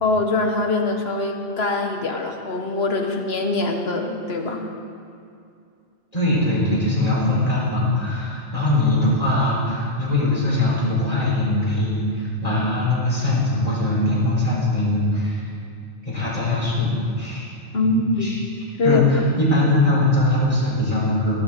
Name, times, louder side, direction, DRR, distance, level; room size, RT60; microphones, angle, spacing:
voice 1, 0.0-4.7 17.7-18.3 18.8-19.0, left 3 dB, 60° left, 3 dB, 1.5 m, -23 dB
voice 2, 6.1-15.5 16.0-17.5 17.8-18.4 18.8-21.4, left 1 dB, 30° left, -6 dB, 4.5 m, -21 dB
17.0 x 13.0 x 3.8 m, 2.5 s
omnidirectional pair, 1.2 m